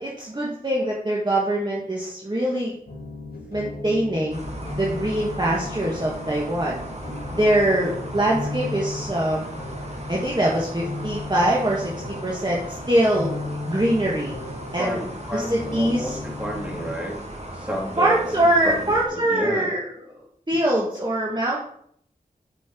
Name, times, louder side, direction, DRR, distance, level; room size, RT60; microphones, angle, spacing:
voice 1, 0.0-2.8 3.5-4.4 4.7-6.8 7.3-9.4 10.1-11.9 12.2-13.3 13.7-14.4 14.7-15.0 15.3-16.2 18.0-19.9 20.5-21.6, right 1 dB, 30° right, -5 dB, 2.0 m, -23 dB
sound 1, 2.9-16.9, left 3 dB, 65° left, 2.4 m, -36 dB
sound 2, 4.3-19.1, right 1 dB, 45° right, 2.2 m, -37 dB
voice 2, 14.8-17.1 17.5-19.7, equal, 10° right, -3 dB, 4.1 m, -31 dB
9.0 x 6.2 x 4.6 m, 0.67 s
wide cardioid pair, 45°, 16 cm